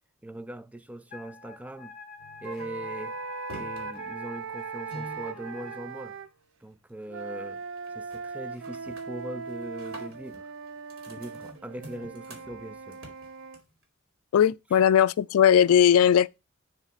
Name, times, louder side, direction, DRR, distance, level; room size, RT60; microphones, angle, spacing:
voice 1, 0.2-2.0 2.4-3.1 3.5-6.2 6.6-7.6 7.9-10.5 11.1-13.0, right 1 dB, 5° right, 0.4 m, -40 dB
Wind instrument woodwind instrument, 1.1-5.8, left 4 dB, 40° left, 0.8 m, -47 dB
sound 1, 2.2-6.7 7.0-7.4 7.8-8.2 8.5-13.8, right 1 dB, 85° right, 2.5 m, -49 dB
sound 2, 2.4-6.3 7.1-13.6, right 4 dB, 65° right, 0.6 m, -39 dB
voice 2, 14.3-16.3, left 9 dB, 85° left, 0.3 m, -19 dB
7.2 x 3.2 x 5.4 m
head